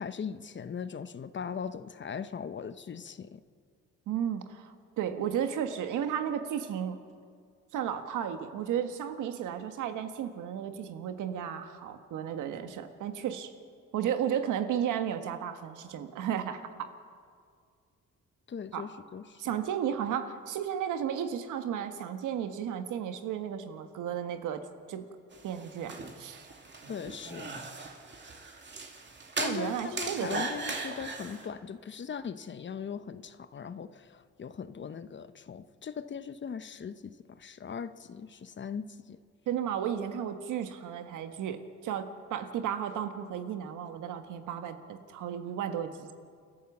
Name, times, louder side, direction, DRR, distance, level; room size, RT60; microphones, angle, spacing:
voice 1, 0.0-3.4 18.5-19.7 26.9-27.6 29.4-39.2, left 6 dB, 40° left, 13 dB, 0.9 m, -39 dB
voice 2, 4.1-7.0 7.7-13.5 13.9-16.6 18.7-18.8 19.4-24.6 24.9-25.1 25.4-26.5 29.4-30.4 39.5-46.1, right 9 dB, 85° right, 8 dB, 1.5 m, -33 dB
sound 1, 25.3-31.5, right 3 dB, 35° right, 2.6 m, -38 dB
29.5 x 12.0 x 7.2 m, 2.1 s
cardioid pair, 90°, 30 cm